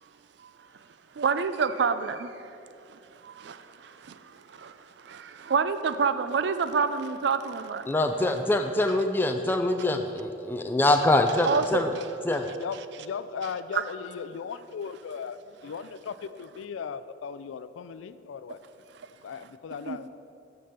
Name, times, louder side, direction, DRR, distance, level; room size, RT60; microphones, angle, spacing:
voice 1, 1.1-2.3 2.9-7.9 11.4-11.9 13.7-13.8 19.9-20.0, right 5 dB, 60° right, 11 dB, 0.4 m, -28 dB
voice 2, 7.9-11.9 12.2-12.5, left 2 dB, 10° left, 5 dB, 0.3 m, -24 dB
voice 3, 12.6-15.4 15.6-18.6 19.2-20.1, left 6 dB, 90° left, 13 dB, 0.4 m, -37 dB
6.5 x 6.0 x 6.6 m, 2.6 s
head